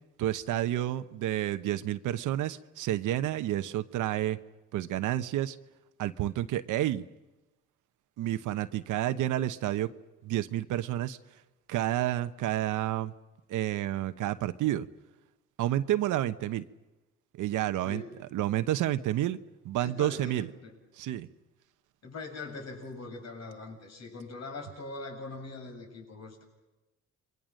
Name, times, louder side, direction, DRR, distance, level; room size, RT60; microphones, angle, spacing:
voice 1, 0.2-4.4 4.7-5.6 6.0-7.0 8.2-9.9 10.2-11.2 11.7-13.1 13.5-14.9 15.6-16.6 17.3-18.0 18.3-19.4 19.6-20.5 21.0-21.3, right 13 dB, 85° right, 10 dB, 1.0 m, -30 dB
voice 2, 17.8-18.2 19.8-20.8 22.0-26.4, left 3 dB, 60° left, 2 dB, 7.5 m, -42 dB
29.5 x 23.5 x 6.5 m, 1.1 s
cardioid pair, 90°, 30 cm